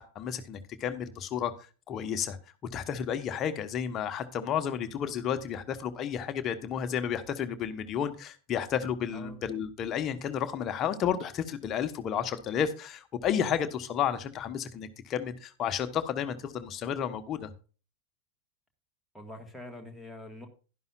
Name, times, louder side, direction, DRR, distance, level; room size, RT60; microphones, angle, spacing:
voice 1, 0.0-1.5 1.9-2.4 2.7-17.5, left 8 dB, 30° left, 10 dB, 1.2 m, -32 dB
voice 2, 19.1-20.5, left 1 dB, ahead, 4 dB, 1.7 m, -44 dB
12.0 x 11.0 x 2.5 m, 0.35 s
figure-of-eight pair, 90°, 0 cm